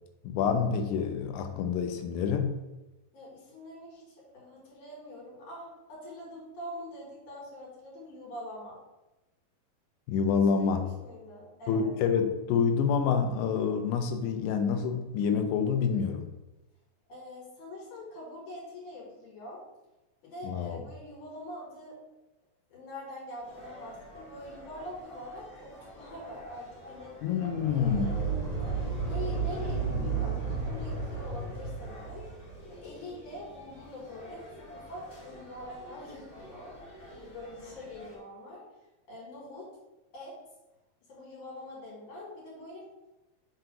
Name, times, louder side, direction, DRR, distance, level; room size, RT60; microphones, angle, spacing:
voice 1, 0.2-2.5 10.1-10.8 11.7-16.3 20.4-20.8 27.2-28.2, left 6 dB, 90° left, 6 dB, 1.7 m, -27 dB
voice 2, 3.1-8.8 10.6-11.9 17.1-19.6 20.2-22.0 22.7-27.1 27.7-28.5 29.0-32.3 32.7-36.7 37.0-38.6 39.1-39.7 40.1-40.4 41.1-42.8, left 1 dB, 55° left, -6 dB, 4.1 m, -44 dB
sound 1, 23.4-38.2, equal, 40° left, 2.6 m, -49 dB
sound 2, 27.4-32.6, right 4 dB, 25° right, 2.0 m, -33 dB
6.4 x 3.8 x 5.8 m, 1.0 s
omnidirectional pair, 4.2 m